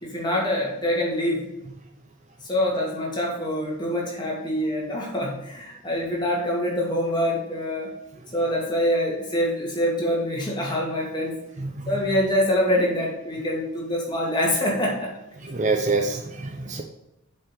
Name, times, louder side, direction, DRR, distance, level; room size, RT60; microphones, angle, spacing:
voice 1, 0.0-1.5 2.4-7.9 8.3-11.4 11.9-15.1 16.6-16.7, equal, 20° left, -3 dB, 2.3 m, -25 dB
voice 2, 11.6-11.9 15.4-16.8, right 3 dB, 30° right, 4 dB, 0.6 m, -26 dB
7.3 x 5.6 x 5.9 m, 0.92 s
head